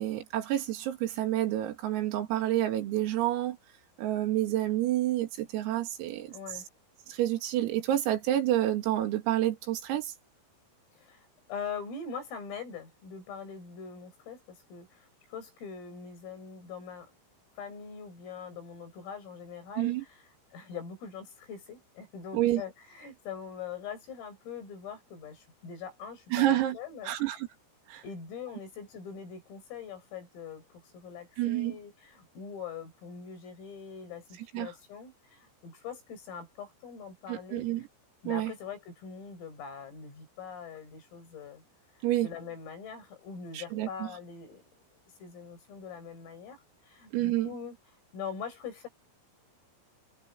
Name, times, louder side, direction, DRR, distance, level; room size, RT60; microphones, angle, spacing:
voice 1, 0.0-3.6 4.0-6.3 7.1-10.1 19.8-20.0 22.3-22.6 26.3-26.8 27.1-27.5 27.9-28.0 31.4-31.8 34.5-34.7 37.3-37.9 38.3-38.5 42.0-42.3 43.5-44.1 47.1-47.5, right 13 dB, 85° right, 5.2 m, -29 dB
voice 2, 6.3-6.7 11.0-17.1 17.6-20.3 20.5-27.4 28.0-37.9 38.2-41.6 42.2-44.6 45.2-47.8 48.1-48.9, left 6 dB, 80° left, 11.0 m, -43 dB
omnidirectional pair, 5.9 m